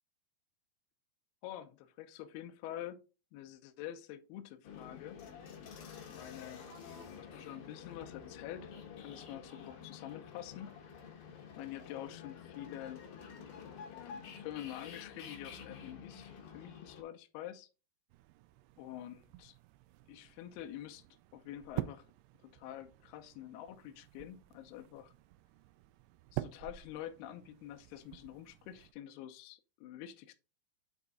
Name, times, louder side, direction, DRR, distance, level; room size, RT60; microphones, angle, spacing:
voice 1, 1.4-3.0 3.3-5.2 6.1-6.7 7.2-11.1 11.6-13.0 13.9-17.7 18.8-19.6 20.1-21.1 21.3-22.1 22.5-25.1 26.3-30.3, left 12 dB, 85° left, 2.3 m, -47 dB
sound 1, 4.6-17.0, left 6 dB, 65° left, 2.4 m, -50 dB
sound 2, 18.1-28.9, right 17 dB, 90° right, 2.3 m, -47 dB
8.0 x 4.1 x 3.6 m
omnidirectional pair, 5.2 m